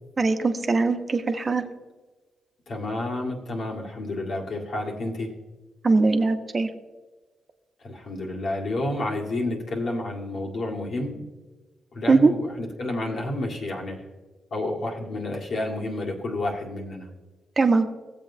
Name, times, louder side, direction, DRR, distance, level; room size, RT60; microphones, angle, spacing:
voice 1, 0.2-1.6 5.8-6.7 12.1-12.3 17.6-17.9, right 3 dB, 40° right, 7 dB, 1.1 m, -20 dB
voice 2, 2.7-5.3 7.8-11.2 11.9-14.0 14.5-17.1, left 2 dB, 60° left, -1 dB, 1.9 m, -30 dB
16.5 x 7.6 x 2.7 m, 1.2 s
hypercardioid pair, 45°, 0 cm